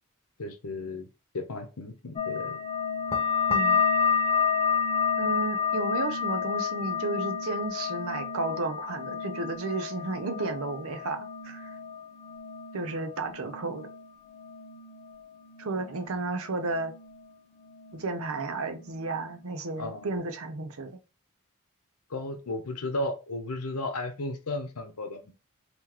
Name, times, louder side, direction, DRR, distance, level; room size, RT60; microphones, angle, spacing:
voice 1, 0.4-1.1 1.3-2.6 19.8-20.2 22.1-25.3, left 2 dB, 85° left, 0.9 m, -34 dB
sound 1, 2.2-17.3 17.6-18.4 18.7-19.4 19.8-20.2, left 6 dB, 25° left, 0.8 m, -31 dB
voice 2, 3.5-3.8 5.2-11.2 11.4-11.7 12.7-13.9 15.6-16.9 17.9-20.9, right 3 dB, 65° right, 0.7 m, -33 dB
3.8 x 3.0 x 3.0 m
head